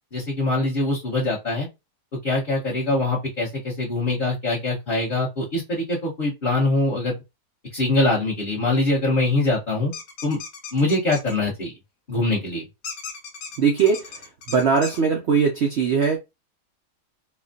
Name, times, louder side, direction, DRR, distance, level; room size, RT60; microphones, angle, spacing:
voice 1, 0.1-1.7 2.2-7.1 7.7-9.9 10.2-10.4 10.7-11.7 12.1-12.6, left 2 dB, 35° left, 1.1 m, -23 dB
sound 1, 9.9-11.3 12.8-15.0, left 5 dB, 60° left, 1.0 m, -37 dB
voice 2, 13.6-16.2, right 6 dB, 70° right, 0.6 m, -21 dB
4.3 x 2.3 x 2.5 m
omnidirectional pair, 1.8 m